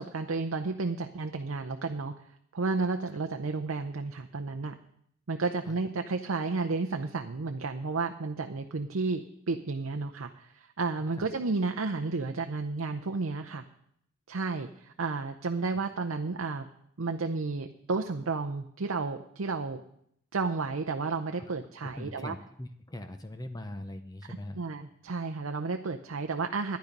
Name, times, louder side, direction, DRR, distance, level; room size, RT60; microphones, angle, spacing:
voice 1, 0.0-2.1 2.5-4.7 5.3-13.6 14.3-16.7 17.0-19.8 20.3-22.3 24.6-26.8, right 3 dB, 75° right, 6 dB, 0.6 m, -32 dB
voice 2, 21.8-24.7, left 1 dB, 20° left, 7 dB, 0.7 m, -41 dB
12.5 x 10.5 x 5.3 m, 0.71 s
head